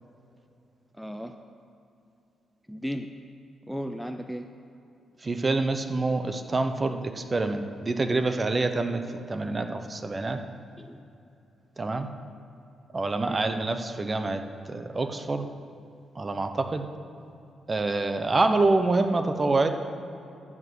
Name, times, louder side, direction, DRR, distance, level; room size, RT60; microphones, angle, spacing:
voice 1, 1.0-1.3 2.7-3.1 3.7-4.5 10.8-11.0 13.2-13.4, equal, ahead, 6 dB, 0.5 m, -35 dB
voice 2, 5.2-10.4 11.8-12.1 12.9-14.4 14.7-15.5 16.2-16.9 17.7-19.7, right 3 dB, 30° right, 8 dB, 0.8 m, -26 dB
12.0 x 5.0 x 8.2 m, 2.8 s
cardioid pair, 90°, 0 cm